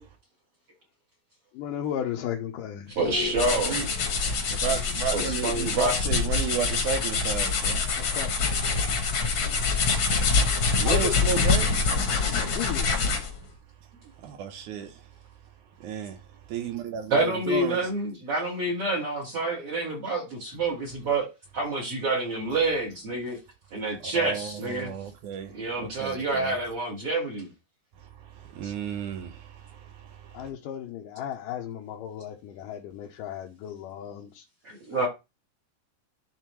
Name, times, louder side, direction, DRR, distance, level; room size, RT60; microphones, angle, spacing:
voice 1, 1.5-3.0 8.0-8.3 10.8-11.2 12.6-12.9 30.3-34.4 34.9-35.1, left 10 dB, 80° left, 2.3 m, -34 dB
sound 1, 3.0-13.4, left 4 dB, 50° left, 1.6 m, -25 dB
voice 2, 3.0-3.7 5.1-6.0 17.1-21.3 21.5-23.4 23.7-24.9 25.5-27.5 28.6-28.7 34.6-35.1, right 2 dB, 45° right, 2.4 m, -28 dB
voice 3, 4.2-7.8 10.8-11.8 14.2-15.1 15.8-16.2 16.5-17.8 24.0-26.5 28.0-30.5, right 7 dB, 70° right, 2.1 m, -33 dB
12.0 x 4.1 x 3.0 m
omnidirectional pair, 4.0 m